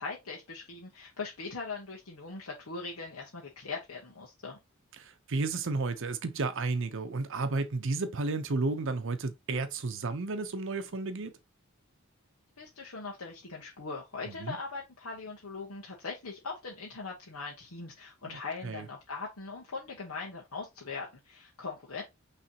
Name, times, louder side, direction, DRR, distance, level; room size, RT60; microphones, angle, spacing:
voice 1, 0.0-4.6 12.6-22.0, left 4 dB, 90° left, 1.3 m, -40 dB
voice 2, 5.0-11.3 14.4-14.6 18.3-18.9, right 3 dB, 60° right, 0.6 m, -32 dB
5.8 x 3.3 x 2.8 m
head